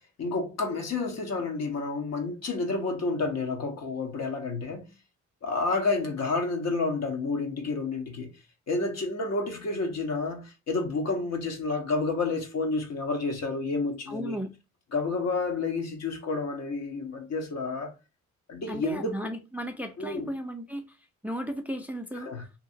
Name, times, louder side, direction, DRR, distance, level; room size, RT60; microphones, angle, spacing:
voice 1, 0.2-4.9 5.4-8.3 8.7-14.4 14.9-17.9 18.5-19.3 20.0-20.3 22.2-22.4, left 3 dB, 55° left, 1.0 m, -30 dB
voice 2, 14.1-14.5 18.7-20.8 21.2-22.3, equal, 5° right, 0.4 m, -35 dB
2.8 x 2.7 x 2.6 m
cardioid pair, 75°, 30 cm